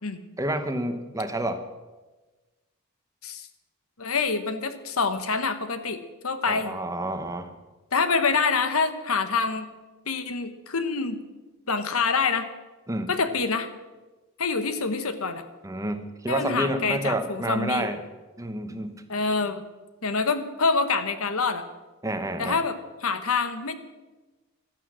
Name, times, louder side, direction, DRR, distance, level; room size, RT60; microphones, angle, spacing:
voice 1, 0.4-1.6 6.5-7.5 12.9-13.1 15.6-18.0 18.4-19.0 22.0-22.6, right 1 dB, 15° right, 8 dB, 1.0 m, -29 dB
voice 2, 4.0-6.8 7.9-9.7 10.1-11.2 11.7-12.5 13.1-13.7 14.4-15.4 16.3-17.9 19.1-19.6 20.0-21.6 22.4-23.8, left 4 dB, 80° left, 10 dB, 1.3 m, -26 dB
15.5 x 12.0 x 6.3 m, 1.2 s
head